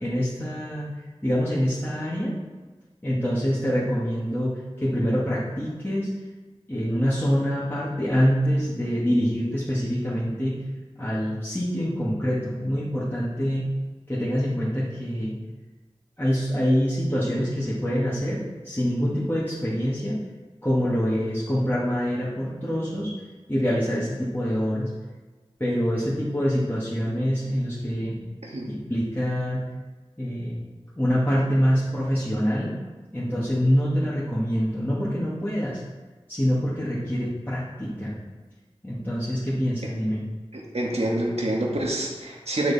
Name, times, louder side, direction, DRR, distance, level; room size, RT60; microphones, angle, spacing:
voice 1, 0.0-0.9 1.2-2.3 3.0-6.1 6.7-10.6 11.0-13.7 14.1-15.4 16.2-18.4 18.6-20.2 20.6-23.1 23.5-24.9 25.6-28.2 28.7-29.6 30.2-30.6 31.0-32.7 33.1-35.8 36.3-38.2 38.8-40.2, equal, 20° left, -9 dB, 2.1 m, -25 dB
voice 2, 40.5-42.7, right 1 dB, 75° right, -2 dB, 1.8 m, -27 dB
10.0 x 6.4 x 4.2 m, 1.3 s
wide cardioid pair, 45°, 11 cm